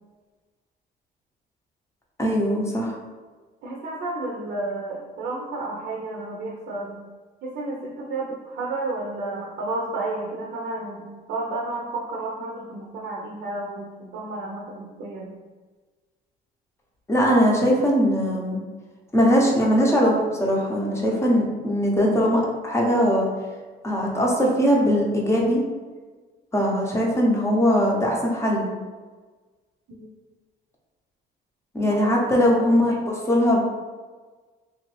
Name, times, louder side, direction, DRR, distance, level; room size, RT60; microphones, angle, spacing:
voice 1, 2.2-3.0 17.1-18.6 19.1-20.1 20.4-23.3 23.8-25.6 26.5-28.7 31.7-33.6, equal, 15° left, -2 dB, 0.7 m, -20 dB
voice 2, 3.6-7.0 7.4-15.3 30.0-30.1 31.9-32.7, right 2 dB, 65° right, -3 dB, 0.6 m, -32 dB
2.9 x 2.5 x 3.1 m, 1.4 s
cardioid pair, 110°, 17 cm